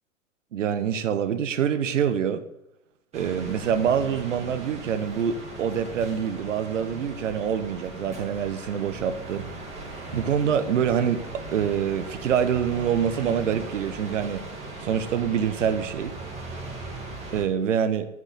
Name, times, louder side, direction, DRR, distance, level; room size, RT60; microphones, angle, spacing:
voice 1, 0.5-2.4 3.1-9.4 10.1-11.2 11.5-14.4 14.8-16.1 17.3-18.1, right 8 dB, 70° right, 9 dB, 1.3 m, -25 dB
sound 1, 3.1-17.4, right 2 dB, 15° right, 3.0 m, -38 dB
12.0 x 5.3 x 6.6 m, 0.87 s
figure-of-eight pair, 100°, 39 cm